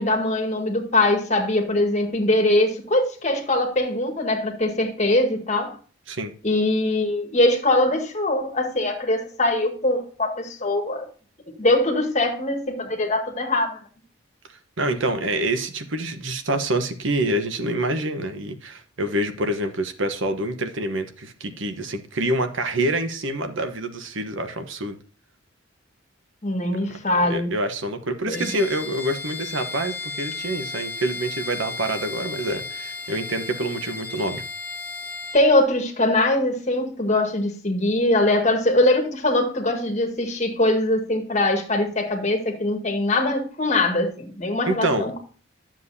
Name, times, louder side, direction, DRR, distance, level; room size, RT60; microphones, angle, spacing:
voice 1, 0.0-5.7 6.4-11.1 11.6-13.8 26.4-27.5 28.3-28.5 35.3-45.2, left 2 dB, 35° left, 2 dB, 1.9 m, -22 dB
voice 2, 14.5-25.0 27.3-34.4 44.7-45.1, right 1 dB, 65° right, 7 dB, 1.1 m, -26 dB
Bowed string instrument, 28.3-35.5, left 4 dB, 10° left, 2.5 m, -34 dB
11.5 x 7.5 x 2.7 m, 0.39 s
head